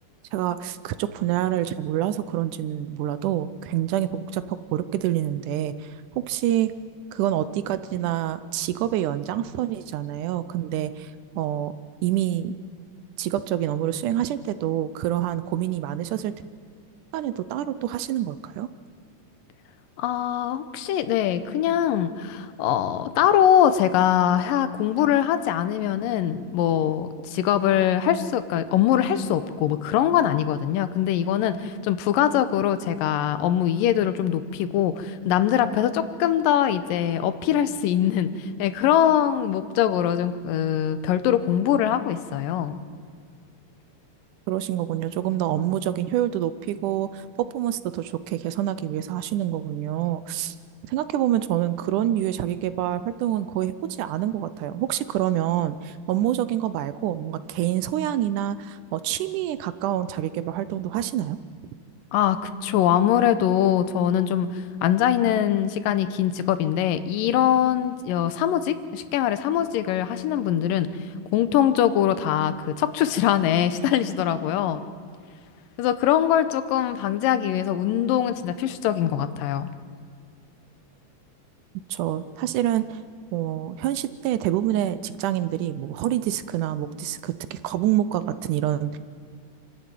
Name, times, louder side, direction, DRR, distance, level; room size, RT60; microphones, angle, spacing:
voice 1, 0.3-6.7 7.1-11.1 11.4-11.7 12.0-12.5 13.2-16.3 17.1-18.7 44.5-47.2 47.5-50.6 50.9-53.7 54.0-61.4 81.9-83.0 83.3-89.0, right 12 dB, 75° right, 13 dB, 2.0 m, -27 dB
voice 2, 20.0-42.8 62.1-70.9 71.3-74.9 75.8-79.7, left 10 dB, 85° left, 12 dB, 2.5 m, -22 dB
26.5 x 12.5 x 9.2 m, 2.2 s
omnidirectional pair, 3.9 m